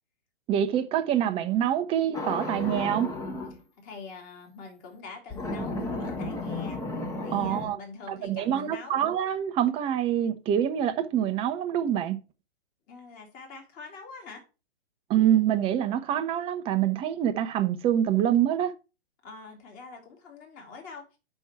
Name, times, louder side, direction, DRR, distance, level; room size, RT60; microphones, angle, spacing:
voice 1, 0.5-3.1 7.3-7.8 8.1-12.2 15.1-18.7, right 10 dB, 15° right, 0.7 m, -25 dB
sound 1, 2.1-3.6 5.3-7.7, left 2 dB, 10° left, 1.0 m, -33 dB
voice 2, 3.8-6.8 7.2-9.0 12.9-14.5 19.2-21.1, left 4 dB, 25° left, 2.5 m, -44 dB
6.1 x 5.4 x 5.8 m
hypercardioid pair, 125°, 33 cm